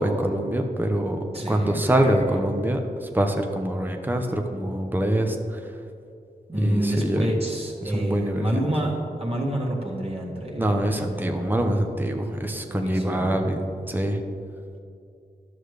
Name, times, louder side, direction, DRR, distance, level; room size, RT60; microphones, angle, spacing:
voice 1, 0.0-5.6 6.6-7.3 7.9-8.7 10.6-14.2, right 1 dB, 10° right, 4 dB, 0.8 m, -25 dB
voice 2, 1.3-2.4 6.5-8.9 9.2-11.5 12.2-12.3 12.7-13.5, right 1 dB, 35° right, -3 dB, 1.8 m, -28 dB
11.0 x 6.5 x 3.3 m, 2.5 s
cardioid pair, 40°, 17 cm